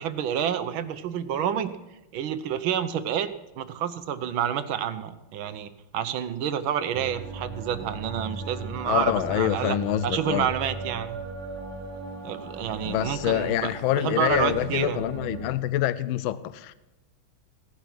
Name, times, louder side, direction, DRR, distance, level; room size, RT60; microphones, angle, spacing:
voice 1, 0.0-1.7 2.1-9.8 10.0-11.2 12.2-13.7 14.0-15.0, right 9 dB, 70° right, 1.6 m, -29 dB
sound 1, 6.9-15.5, right 3 dB, 90° right, 3.8 m, -38 dB
voice 2, 8.9-10.5 12.8-16.7, left 13 dB, 75° left, 1.3 m, -26 dB
17.0 x 10.5 x 6.1 m
omnidirectional pair, 2.4 m